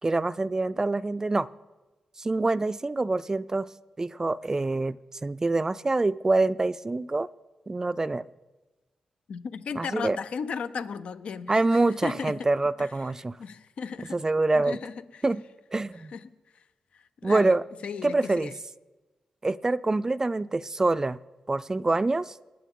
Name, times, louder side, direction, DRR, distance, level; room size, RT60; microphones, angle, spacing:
voice 1, 0.0-1.5 2.2-3.7 4.0-5.0 5.2-7.3 7.7-8.2 9.8-10.2 11.5-13.4 14.1-14.8 15.2-15.4 15.7-16.1 17.2-17.6 18.0-18.5 19.4-21.2 21.5-22.3, right 2 dB, 30° right, 17 dB, 0.4 m, -25 dB
voice 2, 9.3-12.5 12.8-13.1 13.4-14.2 14.5-15.2 15.9-16.7 16.9-18.6, left 6 dB, 75° left, 12 dB, 0.7 m, -36 dB
20.0 x 9.0 x 3.8 m, 1.2 s
cardioid pair, 60°, 2 cm